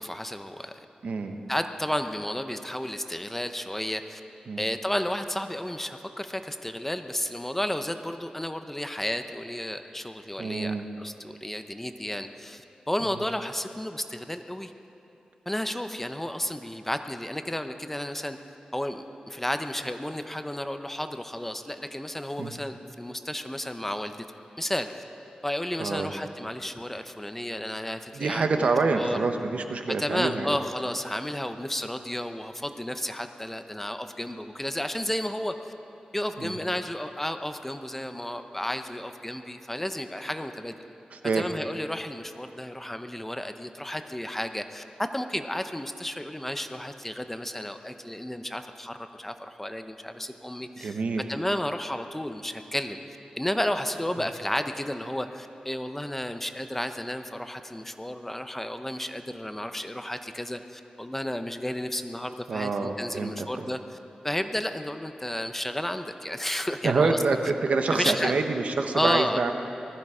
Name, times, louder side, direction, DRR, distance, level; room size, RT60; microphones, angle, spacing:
voice 1, 0.0-0.9 1.5-4.2 4.6-14.7 15.5-18.4 18.7-24.3 24.6-25.0 25.4-29.2 30.0-35.5 36.1-40.7 41.4-44.8 45.1-51.0 51.3-53.0 53.4-63.8 64.2-67.4 67.9-68.3 68.9-69.5, left 1 dB, 10° left, 8 dB, 0.7 m, -32 dB
voice 2, 1.0-1.4 4.5-4.6 10.4-10.8 22.4-22.5 25.8-26.1 28.1-30.6 36.4-36.6 41.1-41.5 50.8-51.2 62.5-63.7 66.8-69.5, right 4 dB, 75° right, 5 dB, 1.1 m, -27 dB
19.5 x 14.0 x 4.9 m, 2.8 s
wide cardioid pair, 90°, 2 cm